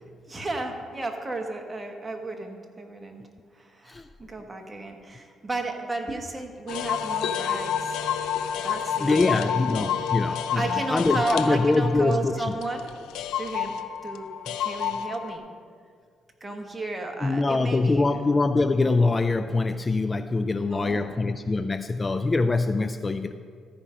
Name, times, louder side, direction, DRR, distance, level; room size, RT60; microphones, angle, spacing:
voice 1, 0.3-3.2 3.5-8.0 8.6-9.9 10.5-12.9 13.4-13.7 14.0-14.3 14.6-15.4 16.4-18.2 20.7-21.2, right 2 dB, 20° right, 3 dB, 1.4 m, -33 dB
sound 1, 6.7-15.4, left 8 dB, 90° left, 0.5 m, -29 dB
voice 2, 9.0-10.6 10.9-12.5 17.2-23.3, left 3 dB, 25° left, 10 dB, 0.3 m, -24 dB
14.0 x 5.1 x 5.5 m, 2.1 s
cardioid pair, 90°, 0 cm